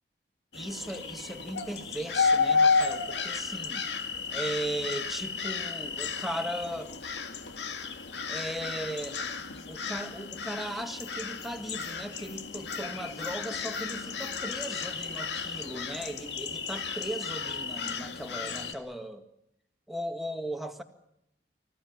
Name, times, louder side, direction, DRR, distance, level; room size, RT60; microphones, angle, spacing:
sound 1, 0.5-18.7, left 5 dB, 85° left, 2.1 m, -32 dB
voice 1, 0.5-3.9 4.3-6.9 8.3-9.2 9.7-19.2 19.9-20.8, right 1 dB, ahead, 5 dB, 1.8 m, -37 dB
25.5 x 16.0 x 9.5 m, 0.80 s
head